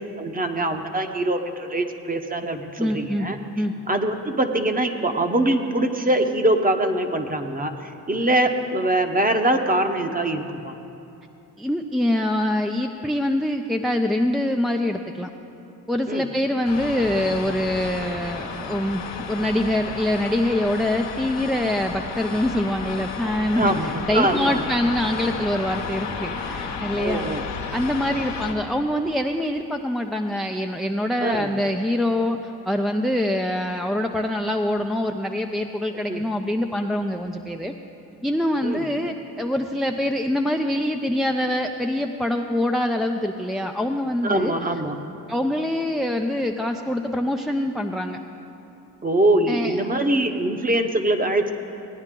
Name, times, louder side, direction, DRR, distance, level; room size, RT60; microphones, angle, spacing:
voice 1, 0.2-3.4 3.9-10.7 16.1-16.3 23.5-24.7 27.0-27.4 31.2-31.5 36.1-36.2 38.6-38.9 44.2-45.0 49.0-51.5, right 1 dB, 20° right, 6 dB, 0.9 m, -23 dB
voice 2, 2.8-3.3 3.6-3.7 11.6-15.3 15.9-27.2 27.7-37.7 38.2-44.5 45.3-48.2 49.5-49.7, left 1 dB, ahead, 3 dB, 0.4 m, -24 dB
sound 1, 16.6-28.5, left 5 dB, 85° left, 1.1 m, -32 dB
16.5 x 9.7 x 3.7 m, 2.8 s
supercardioid pair, 60°, 41 cm